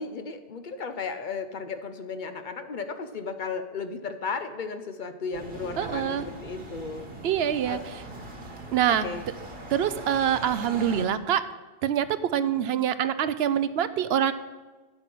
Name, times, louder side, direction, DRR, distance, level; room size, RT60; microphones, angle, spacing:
voice 1, 0.0-7.0 7.7-7.8 8.9-9.2, left 4 dB, 55° left, 9 dB, 0.8 m, -35 dB
sound 1, 5.3-11.1, right 2 dB, 65° right, 1.7 m, -41 dB
voice 2, 5.8-6.3 7.2-7.8 8.7-9.1 9.7-11.4 11.8-14.3, right 9 dB, 80° right, 13 dB, 0.8 m, -25 dB
10.0 x 7.8 x 6.0 m, 1.3 s
omnidirectional pair, 1.0 m